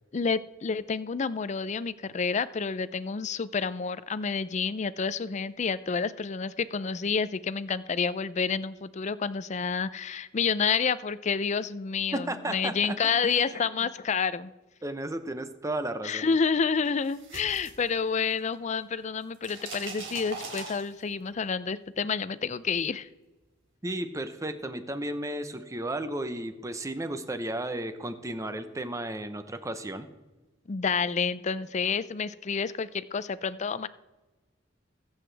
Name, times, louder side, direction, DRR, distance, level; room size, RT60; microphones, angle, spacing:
voice 1, 0.1-14.5 16.0-23.1 30.7-33.9, left 5 dB, 35° left, 15 dB, 0.4 m, -29 dB
voice 2, 12.1-13.9 14.8-16.3 23.8-30.1, right 1 dB, 15° right, 10 dB, 0.8 m, -34 dB
sound 1, 16.8-18.5 18.8-21.3, right 3 dB, 70° right, 3.4 m, -41 dB
22.0 x 8.0 x 3.4 m, 1.2 s
head